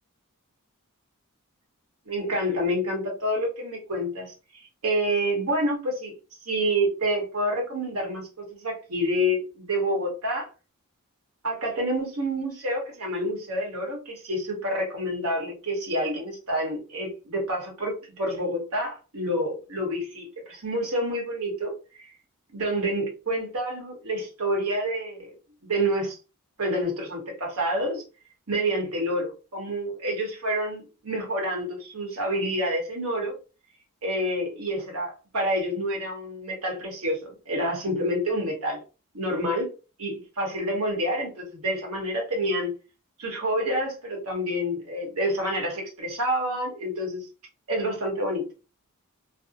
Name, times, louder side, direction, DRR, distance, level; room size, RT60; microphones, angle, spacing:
voice 1, 2.1-6.1 6.5-10.5 11.4-22.0 22.5-25.3 25.6-26.1 26.6-28.0 28.5-33.3 34.0-38.8 39.1-39.7 40.0-42.7 43.2-47.3 47.7-48.5, equal, 70° right, 0 dB, 1.0 m, -28 dB
2.6 x 2.0 x 2.5 m, 0.32 s
head